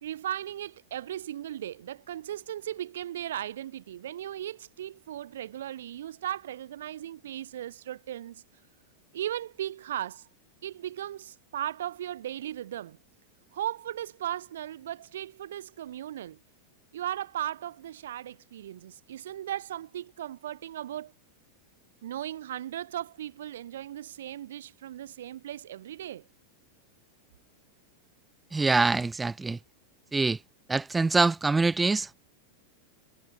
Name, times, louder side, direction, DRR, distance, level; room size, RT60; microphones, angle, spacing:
voice 1, 0.0-8.4 9.1-10.3 10.6-13.0 13.5-16.4 16.9-21.1 22.0-26.3, right 11 dB, 60° right, 0.5 m, -37 dB
voice 2, 28.5-29.6 30.1-30.4 30.7-32.1, right 3 dB, 10° right, 0.4 m, -24 dB
figure-of-eight pair, 90°, 0 cm